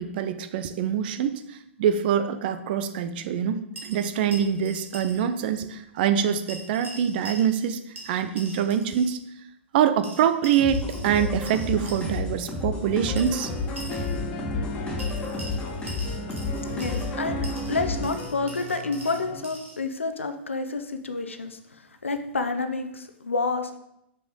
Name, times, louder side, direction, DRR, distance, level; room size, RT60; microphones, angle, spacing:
voice 1, 0.0-9.2 9.7-13.5, right 8 dB, 50° right, 10 dB, 0.6 m, -25 dB
sound 1, 3.7-5.2 5.5-5.6 6.5-7.7 8.0-9.1 10.0-12.2 13.2-14.2 15.0-17.1 17.4-19.8, right 1 dB, 80° right, 2.2 m, -43 dB
sound 2, 10.6-18.2, left 3 dB, 15° left, 2.8 m, -31 dB
sound 3, 13.0-19.4, equal, 40° left, 1.1 m, -36 dB
voice 2, 16.7-21.6 22.0-23.8, left 3 dB, 80° left, 8 dB, 0.7 m, -29 dB
6.9 x 5.9 x 3.7 m, 0.80 s
figure-of-eight pair, 100°, 7 cm